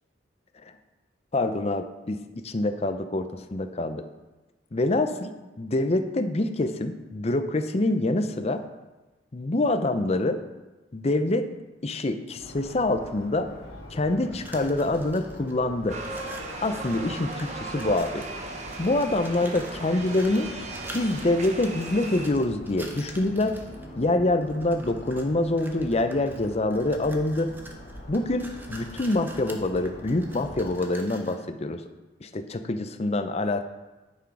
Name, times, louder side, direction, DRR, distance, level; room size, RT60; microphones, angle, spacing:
voice 1, 1.3-4.1 4.7-5.3 5.6-8.6 9.3-10.4 10.9-11.5 11.8-13.5 13.9-16.0 16.6-18.3 18.8-20.5 20.9-23.6 24.0-27.5 28.1-31.8 32.2-33.7, left 2 dB, 35° left, 8 dB, 0.5 m, -26 dB
sound 1, 12.4-30.7, left 1 dB, 60° left, 2.1 m, -44 dB
Screw Box, 14.2-15.5 15.8-18.4 18.7-23.8 24.4-25.3 25.6-31.4, right 1 dB, 10° right, 0.8 m, -46 dB
sound 2, 15.9-22.3, right 2 dB, 35° right, 1.0 m, -37 dB
10.0 x 6.1 x 4.8 m, 1.1 s
head